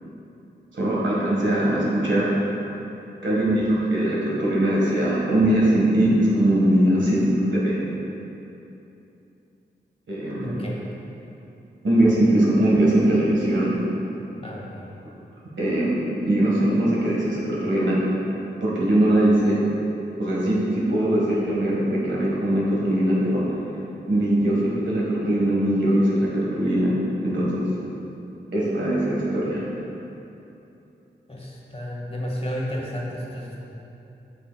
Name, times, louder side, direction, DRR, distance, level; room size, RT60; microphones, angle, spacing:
voice 1, 0.7-2.4 3.2-7.8 10.1-10.6 11.8-13.8 15.6-18.0 18.6-19.6 20.2-23.4 24.1-26.9 27.2-27.7 28.5-29.6, right 1 dB, 80° right, -6 dB, 1.4 m, -21 dB
voice 2, 10.4-10.8 14.4-14.9 31.3-33.6, equal, 30° left, -3 dB, 1.2 m, -32 dB
7.8 x 5.4 x 2.3 m, 2.9 s
cardioid pair, 50°, 19 cm